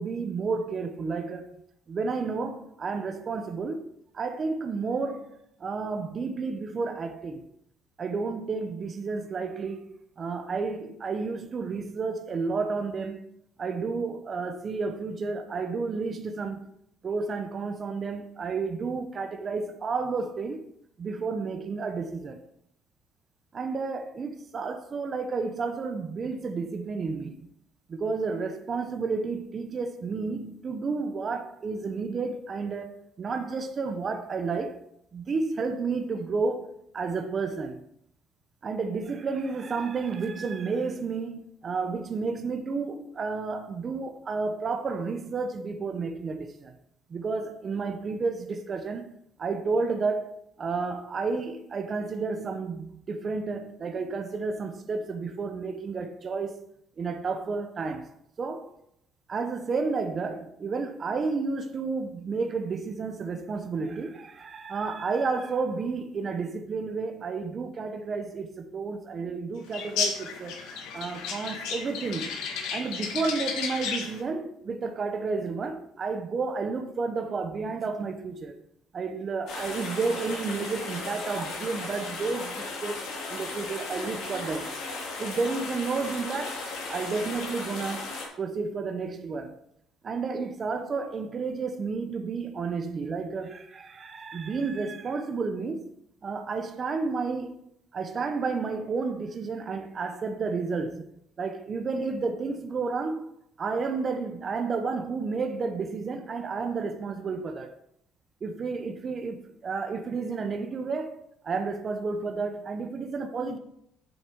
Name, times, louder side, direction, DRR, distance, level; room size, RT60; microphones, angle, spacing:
voice 1, 0.0-1.5 1.9-7.5 8.0-9.8 10.2-13.2 13.6-16.7 17.0-20.6 21.0-22.4 23.5-27.5 27.9-32.9 33.2-34.8 35.1-37.8 38.6-46.7 47.1-49.1 49.4-56.6 57.0-58.1 58.4-58.8 59.3-70.6 70.9-72.4 72.7-78.6 78.9-83.0 83.3-84.7 85.2-86.6 86.9-88.0 88.4-89.5 90.0-95.9 96.2-97.6 97.9-101.1 101.4-103.3 103.6-107.7 108.4-113.6, right 4 dB, 25° right, 0.8 m, -31 dB
sound 1, 69.7-74.2, left 5 dB, 75° left, 1.7 m, -33 dB
sound 2, 79.5-88.3, left 3 dB, 60° left, 3.1 m, -36 dB
8.4 x 7.1 x 4.5 m
cardioid pair, 170°, 0 cm